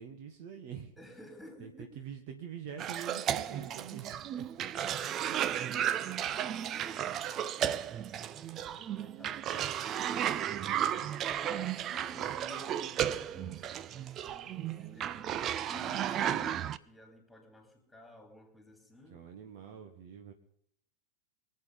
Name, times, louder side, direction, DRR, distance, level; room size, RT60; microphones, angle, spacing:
voice 1, 0.0-0.9 1.6-1.7 1.9-4.5 5.3-6.1 14.9-15.5 19.1-20.3, right 8 dB, 45° right, 7 dB, 1.7 m, -46 dB
voice 2, 1.0-2.0 4.6-5.3 5.8-10.3 10.7-15.3 15.6-19.2, left 1 dB, ahead, 4 dB, 4.5 m, -53 dB
Cough, 2.8-16.8, right 10 dB, 30° right, 0.6 m, -34 dB
24.0 x 8.4 x 5.3 m, 0.71 s
figure-of-eight pair, 90°, 0 cm